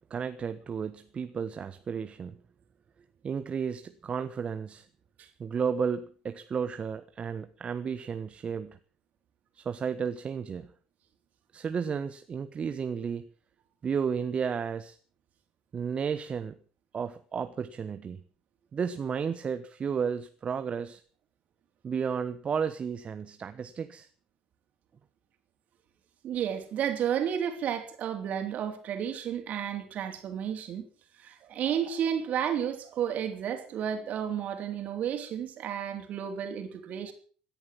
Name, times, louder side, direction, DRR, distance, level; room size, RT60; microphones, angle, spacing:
voice 1, 0.1-2.4 3.2-4.9 5.4-8.8 9.6-10.7 11.5-13.3 13.8-15.0 15.7-16.5 16.9-18.2 18.7-21.0 21.8-24.1, right 6 dB, 40° right, 1.2 m, -33 dB
voice 2, 26.2-30.9 31.2-37.1, right 9 dB, 55° right, 3.7 m, -32 dB
17.0 x 10.5 x 7.4 m
hypercardioid pair, 70°, 3 cm